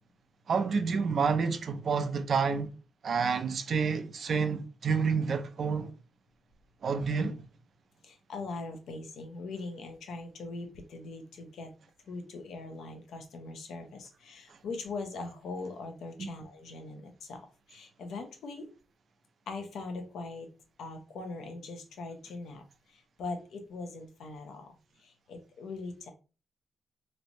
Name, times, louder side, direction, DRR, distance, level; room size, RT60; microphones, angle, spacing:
voice 1, 0.5-2.7 3.0-5.9 6.8-7.5 16.2-16.3, right 5 dB, 45° right, 0.4 m, -29 dB
voice 2, 8.0-11.7 12.1-18.6 19.5-20.5 20.8-22.6 22.9-24.7 25.0-26.1, left 3 dB, 80° left, 0.7 m, -41 dB
3.2 x 2.6 x 3.0 m
wide cardioid pair, 170°, 0 cm